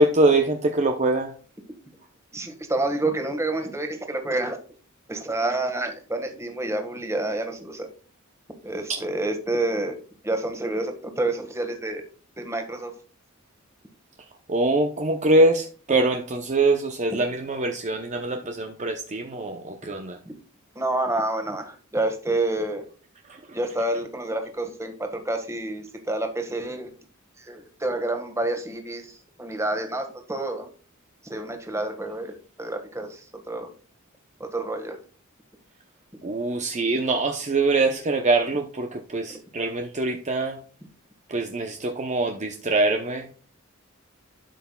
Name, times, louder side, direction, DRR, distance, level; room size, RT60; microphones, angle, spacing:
voice 1, 0.0-1.3 14.5-20.2 23.3-23.6 36.2-40.6 41.3-43.3, right 2 dB, 35° right, 0.7 m, -23 dB
voice 2, 2.3-4.6 5.1-7.9 8.6-9.9 10.2-12.0 12.4-12.9 20.7-22.8 23.5-26.9 27.4-30.7 31.2-33.7 34.4-35.0, right 2 dB, 15° right, 1.6 m, -28 dB
12.5 x 5.8 x 2.3 m
head